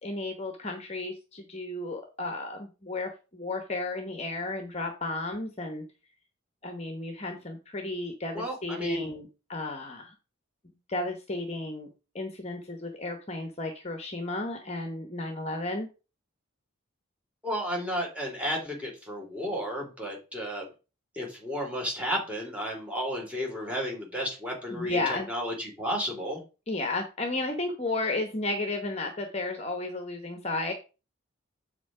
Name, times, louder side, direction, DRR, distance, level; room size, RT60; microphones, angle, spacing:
voice 1, 0.0-5.8 6.6-10.1 10.9-11.9 12.1-15.9 24.7-25.3 26.7-30.7, left 2 dB, 30° left, 5 dB, 1.0 m, -33 dB
voice 2, 8.3-9.1 17.4-20.7 21.1-26.4, equal, 5° right, -1 dB, 2.7 m, -32 dB
7.5 x 5.0 x 4.8 m, 0.31 s
head